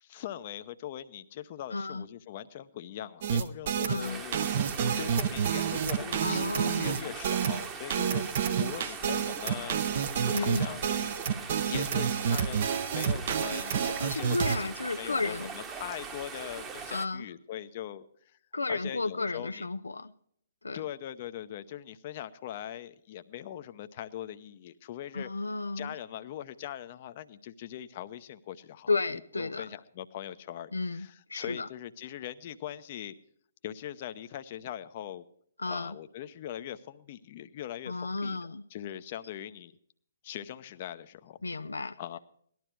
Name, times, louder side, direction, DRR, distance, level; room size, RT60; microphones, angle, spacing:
voice 1, 0.0-6.5 6.8-9.8 10.4-11.4 11.7-14.7 15.0-18.1 18.7-19.7 20.7-25.3 25.8-33.2 33.6-35.2 35.7-38.4 38.7-39.7 40.2-41.4 42.0-42.2, left 11 dB, 40° left, 11 dB, 0.7 m, -41 dB
voice 2, 1.7-2.1 3.9-4.2 6.2-7.1 10.3-10.7 14.1-15.5 16.9-17.3 18.5-20.1 20.6-20.8 25.1-25.9 28.9-29.6 30.7-31.7 35.6-36.0 37.9-38.6 41.4-42.0, left 3 dB, 85° left, 9 dB, 0.5 m, -33 dB
sound 1, 3.2-14.6, right 8 dB, 50° right, 0.8 m, -29 dB
sound 2, 4.0-17.1, right 5 dB, 20° right, 1.1 m, -41 dB
18.0 x 12.0 x 4.7 m, 0.66 s
figure-of-eight pair, 135°, 0 cm